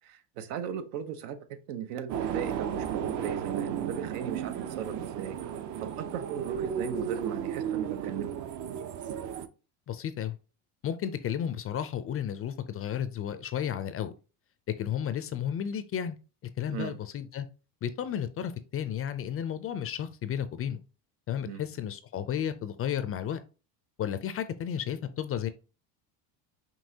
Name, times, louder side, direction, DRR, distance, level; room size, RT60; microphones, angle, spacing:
voice 1, 0.0-5.4 5.8-8.3 16.7-17.0 21.4-21.6, right 8 dB, 85° right, 0.8 m, -37 dB
sound 1, 2.1-9.5, right 8 dB, 45° right, 0.5 m, -34 dB
voice 2, 9.9-10.4 10.8-14.1 14.7-16.2 16.6-17.5 17.8-20.8 21.3-23.4 24.0-25.5, left 9 dB, 30° left, 0.4 m, -33 dB
5.4 x 2.9 x 2.7 m
supercardioid pair, 110°, 46 cm